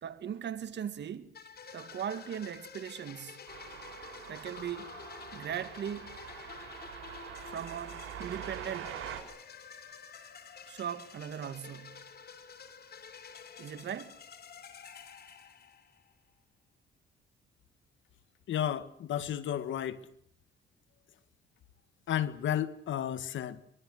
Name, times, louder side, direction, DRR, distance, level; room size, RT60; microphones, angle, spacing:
voice 1, 0.0-1.3 1.7-3.4 4.3-5.0 5.3-6.2 7.5-9.0 10.7-12.1 13.6-14.2, right 9 dB, 60° right, 2.2 m, -39 dB
sound 1, 1.3-16.1, left 6 dB, 55° left, 3.7 m, -50 dB
sound 2, 3.5-9.2, right 11 dB, 85° right, 6.1 m, -45 dB
voice 2, 18.5-20.1 22.1-23.6, left 10 dB, 75° left, 1.8 m, -32 dB
24.0 x 23.0 x 7.8 m
cardioid pair, 90°, 20 cm